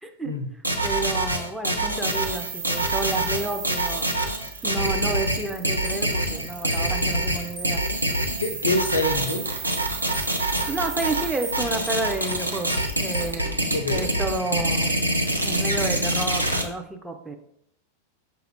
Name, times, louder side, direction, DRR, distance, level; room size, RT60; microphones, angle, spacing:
voice 1, 0.0-0.3 0.8-4.1 4.6-7.8 10.7-12.7 13.0-15.0 15.4-17.4, right 2 dB, 5° right, 4 dB, 0.4 m, -30 dB
sound 1, 0.6-16.6, right 1 dB, 85° right, 0.5 m, -25 dB
sound 2, 2.0-13.3, right 7 dB, 50° right, 0.7 m, -37 dB
sound 3, 5.8-6.0 6.7-6.9 7.6-7.7 8.4-8.6 8.8-9.0 9.3-9.4 9.7-9.9 10.1-10.3 10.6-10.7 11.0-11.2 11.4-11.6 11.8-12.0 12.3-12.4 12.7-12.9 13.1-13.3, right 2 dB, 20° right, 0.8 m, -39 dB
voice 2, 8.4-9.5 13.7-14.1, left 2 dB, 75° left, 8 dB, 0.4 m, -26 dB
5.6 x 2.3 x 3.4 m, 0.75 s
figure-of-eight pair, 90°, 0 cm